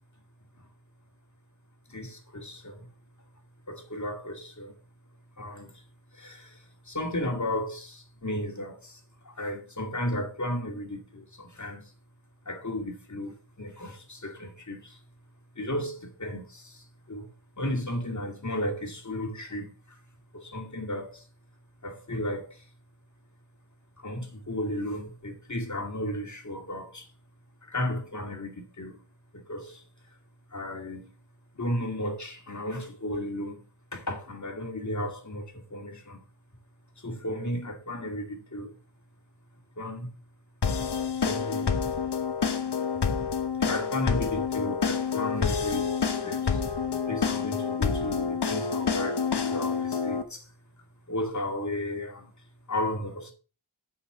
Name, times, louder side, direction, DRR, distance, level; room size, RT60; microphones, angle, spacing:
voice 1, 1.9-2.9 3.7-4.8 5.4-5.8 6.1-11.9 12.4-15.1 15.5-20.0 20.3-21.3 21.8-22.7 24.0-27.1 27.6-29.0 29.3-29.9 30.5-31.1 31.5-33.7 33.9-36.2 37.0-38.8 39.7-40.1 41.2-41.7 42.9-43.0 43.6-50.5 51.1-53.3, left 1 dB, 45° left, 2.5 m, -34 dB
sound 1, 40.6-50.2, left 6 dB, 75° left, 1.2 m, -28 dB
8.3 x 5.8 x 5.8 m
wide cardioid pair, 65°, 41 cm